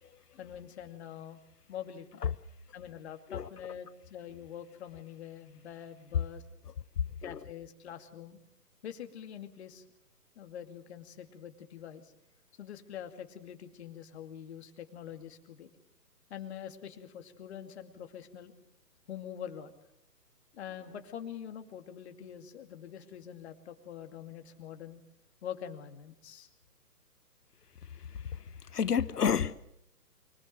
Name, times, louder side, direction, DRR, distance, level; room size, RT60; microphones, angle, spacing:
voice 1, 0.4-1.4 1.7-2.2 2.7-6.4 7.2-8.4 8.8-9.8 10.4-12.1 12.6-15.7 16.3-18.5 19.1-19.7 20.5-25.0 25.4-26.5, left 9 dB, 40° left, 2.5 m, -45 dB
voice 2, 28.7-29.5, left 7 dB, 70° left, 1.1 m, -29 dB
24.0 x 22.5 x 7.6 m
figure-of-eight pair, 140°, 49 cm